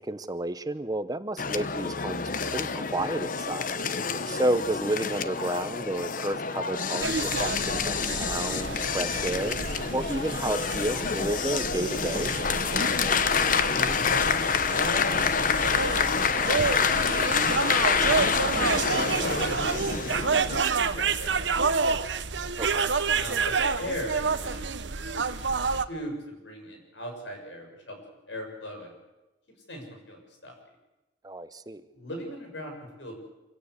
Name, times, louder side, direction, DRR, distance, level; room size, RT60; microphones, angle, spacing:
voice 1, 0.0-3.7 4.3-12.3 22.6-23.0 31.2-31.8, right 1 dB, 20° right, 12 dB, 0.8 m, -31 dB
sound 1, 1.4-20.6, left 5 dB, 45° left, 1.0 m, -27 dB
voice 2, 3.9-4.3 13.7-16.7 16.9-18.5 18.7-20.4 20.9-21.7 23.1-25.5 25.7-28.0 28.3-28.9 29.7-30.5 31.9-33.1, equal, 85° left, 3 dB, 7.0 m, -40 dB
sound 2, 7.0-25.9, right 5 dB, 80° right, 1.1 m, -29 dB
26.0 x 16.5 x 8.3 m, 1.0 s
head